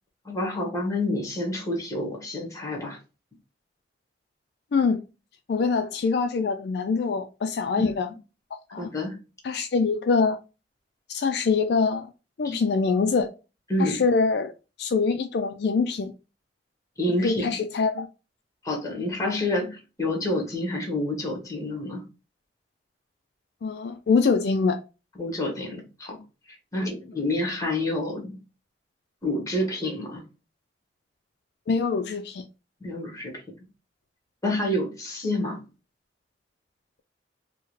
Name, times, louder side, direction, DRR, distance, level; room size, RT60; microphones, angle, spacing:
voice 1, 0.2-3.0 7.7-7.9 8.8-9.2 12.4-12.6 13.7-14.0 17.0-17.5 18.6-22.0 25.2-26.2 26.7-28.4 29.2-30.2 32.8-33.4 34.4-35.6, left 1 dB, 20° left, 1.2 m, -28 dB
voice 2, 5.5-8.1 8.7-8.9 9.4-10.4 11.1-12.1 12.4-13.3 13.8-14.5 14.8-16.1 17.2-18.1 18.9-19.0 23.6-24.8 31.7-32.4, left 4 dB, 65° left, 0.4 m, -24 dB
4.5 x 2.2 x 3.1 m
head